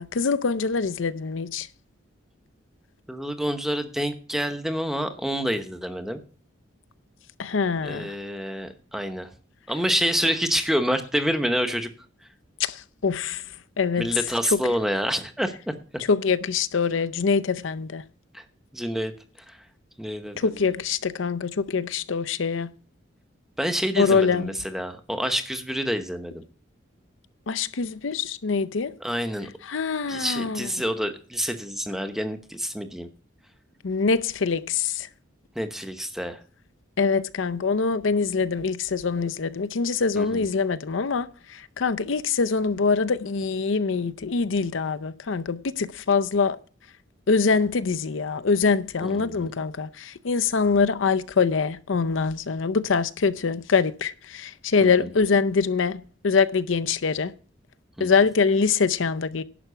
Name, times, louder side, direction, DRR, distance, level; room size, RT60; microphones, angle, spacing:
voice 1, 0.0-1.7 7.4-8.1 12.6-13.4 13.8-14.1 14.5-14.6 16.1-18.0 20.4-22.7 24.0-24.5 27.5-28.9 29.7-30.7 33.8-35.1 37.0-46.6 47.3-57.3 58.0-59.4, left 5 dB, 80° left, 0.6 m, -24 dB
voice 2, 3.1-6.2 7.8-9.3 9.7-11.9 14.0-15.7 18.3-18.4 18.7-19.1 19.5-19.6 20.0-20.7 23.6-26.4 29.0-29.5 30.1-33.1 35.5-36.4 40.2-40.4 49.0-49.5 54.8-55.1 58.0-58.1, equal, ahead, 0.9 m, -28 dB
11.0 x 5.9 x 6.8 m
head